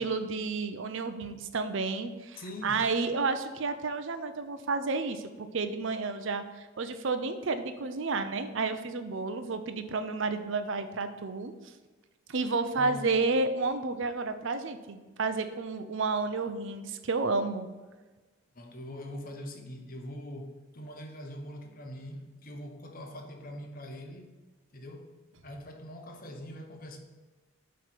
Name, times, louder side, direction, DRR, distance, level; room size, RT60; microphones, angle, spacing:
voice 1, 0.0-5.2 5.5-11.5 12.3-17.7, right 3 dB, 60° right, 9 dB, 0.5 m, -31 dB
voice 2, 2.4-2.9 12.8-13.0 18.5-24.3 24.7-27.0, left 1 dB, 40° left, 4 dB, 0.8 m, -43 dB
7.9 x 3.2 x 5.8 m, 1.3 s
head